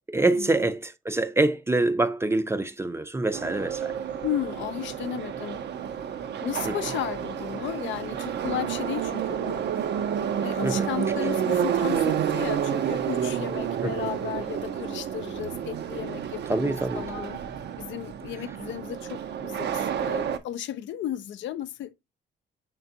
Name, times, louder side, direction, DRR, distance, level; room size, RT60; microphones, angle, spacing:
voice 1, 0.1-4.0 6.7-6.8 10.6-10.9 13.8-14.0 16.5-17.1, right 2 dB, 15° right, 0.5 m, -25 dB
Subway metro underground, 3.3-20.4, right 8 dB, 60° right, 0.6 m, -30 dB
voice 2, 4.2-5.7 6.4-9.6 10.4-17.4 17.8-21.9, left 11 dB, 70° left, 0.4 m, -34 dB
5.9 x 3.4 x 2.6 m
cardioid pair, 90°, 20 cm